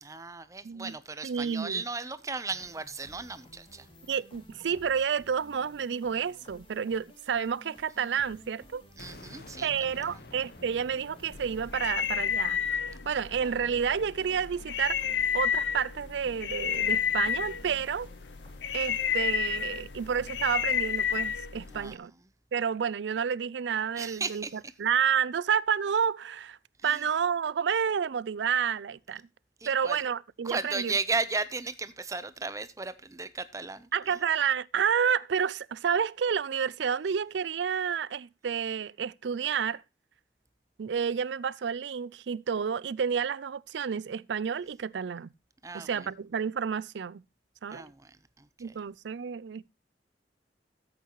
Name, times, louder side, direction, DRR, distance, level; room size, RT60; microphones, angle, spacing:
voice 1, 0.0-3.9 9.0-9.7 21.7-22.0 24.0-24.5 26.8-27.0 29.6-30.0 30.4-34.2 45.6-46.1 47.7-48.8, right 3 dB, 20° right, 0.7 m, -35 dB
voice 2, 0.6-0.9 1.2-1.8 4.1-8.8 9.6-12.6 13.1-15.0 15.3-18.1 18.7-22.1 22.5-26.6 26.8-29.2 29.7-30.9 33.9-39.8 40.8-45.3 45.7-47.2 47.6-47.9 48.6-49.7, right 7 dB, 80° right, 0.4 m, -30 dB
sound 1, 2.5-21.4, left 1 dB, 30° left, 2.4 m, -55 dB
sound 2, 9.0-14.8, left 2 dB, 60° left, 1.3 m, -51 dB
sound 3, 11.3-21.9, left 8 dB, 80° left, 0.7 m, -31 dB
14.0 x 8.2 x 3.0 m
head